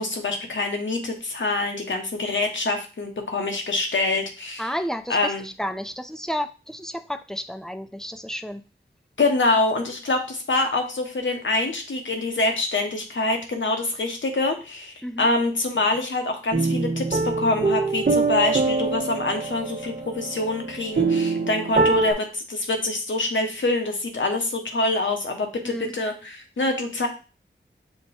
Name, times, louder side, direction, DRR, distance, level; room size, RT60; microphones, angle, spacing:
voice 1, 0.0-4.6 5.1-5.5 9.2-27.1, left 2 dB, 80° left, 4 dB, 0.9 m, -25 dB
voice 2, 4.6-8.6 15.0-15.3 25.6-25.9, equal, 5° left, 8 dB, 0.5 m, -31 dB
sound 1, 16.5-22.1, right 4 dB, 55° right, 0.9 m, -24 dB
5.8 x 2.2 x 4.1 m, 0.33 s
cardioid pair, 45°, 19 cm